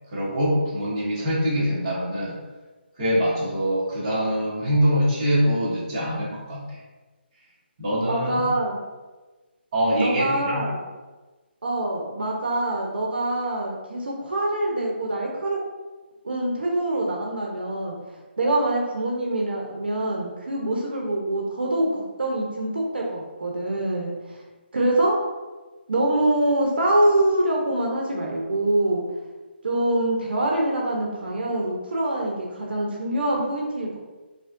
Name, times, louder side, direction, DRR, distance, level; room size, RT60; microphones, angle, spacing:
voice 1, 0.1-2.4 3.0-6.8 7.8-8.5 9.7-10.6, equal, 20° right, -9 dB, 0.9 m, -24 dB
voice 2, 8.1-8.8 10.0-10.8 11.6-15.6 16.2-18.0 18.4-24.4 24.7-25.2 25.9-29.0 29.6-34.0, right 1 dB, 60° right, -2 dB, 0.7 m, -24 dB
5.0 x 2.1 x 2.5 m, 1.2 s
hypercardioid pair, 180°, 6 cm